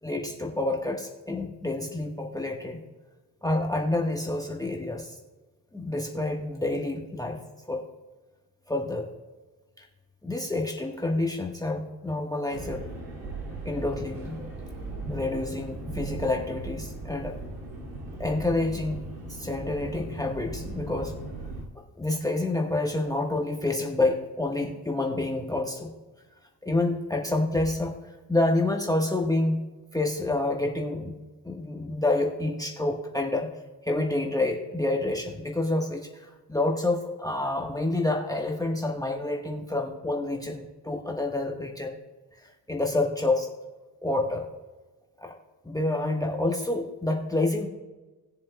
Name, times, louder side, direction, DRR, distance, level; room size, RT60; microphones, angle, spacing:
voice 1, 0.0-2.8 3.4-5.2 5.7-7.4 7.7-7.8 8.7-9.1 9.8-9.9 10.2-12.9 13.6-14.4 15.1-17.4 18.2-21.2 22.0-25.9 26.6-27.9 28.3-29.6 29.9-31.2 31.4-33.5 33.8-42.0 42.4-43.5 44.0-44.4 45.2-45.3 45.6-47.7, left 2 dB, 10° left, 1 dB, 1.4 m, -28 dB
sound 1, 12.5-21.6, right 2 dB, 85° right, 2.7 m, -38 dB
19.5 x 7.2 x 2.3 m, 1.2 s
supercardioid pair, 65°, 46 cm